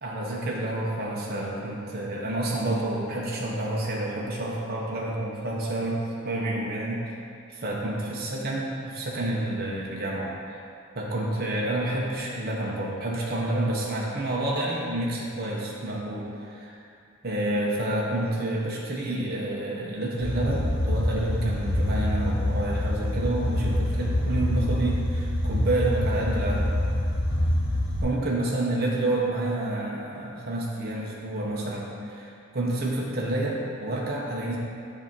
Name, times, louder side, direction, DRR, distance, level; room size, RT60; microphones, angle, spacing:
voice 1, 0.0-7.0 7.5-10.6 10.9-16.8 17.2-26.7 28.0-34.6, right 1 dB, 50° right, -4 dB, 0.8 m, -29 dB
sound 1, 20.2-28.0, left 1 dB, 65° left, 1.0 m, -26 dB
7.5 x 2.8 x 5.3 m, 2.5 s
head